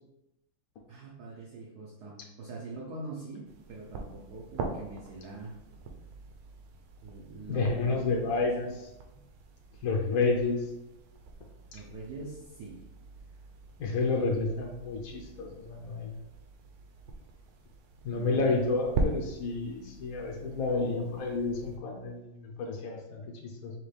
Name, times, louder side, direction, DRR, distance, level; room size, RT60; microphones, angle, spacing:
voice 1, 0.9-5.5 7.0-8.7 10.1-10.2 11.7-12.8 18.2-18.7, right 3 dB, 65° right, -4 dB, 1.0 m, -44 dB
sound 1, 3.5-21.8, right 3 dB, 85° right, 1.5 m, -42 dB
voice 2, 7.5-8.9 9.8-10.7 11.7-11.8 13.8-16.1 18.0-23.7, left 3 dB, 85° left, 0 dB, 0.7 m, -30 dB
6.2 x 2.5 x 3.3 m, 0.90 s
omnidirectional pair, 2.4 m